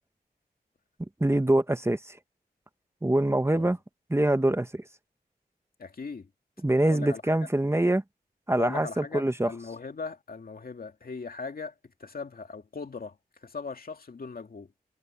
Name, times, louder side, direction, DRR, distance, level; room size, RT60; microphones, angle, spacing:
voice 1, 1.2-2.2 3.0-3.8 4.1-4.8 6.6-8.0 8.5-9.5, right 1 dB, 15° right, 1.3 m, -24 dB
voice 2, 5.8-6.3 6.8-7.4 8.6-11.7 12.0-14.7, left 4 dB, 65° left, 2.4 m, -39 dB
cardioid pair, 60°, 16 cm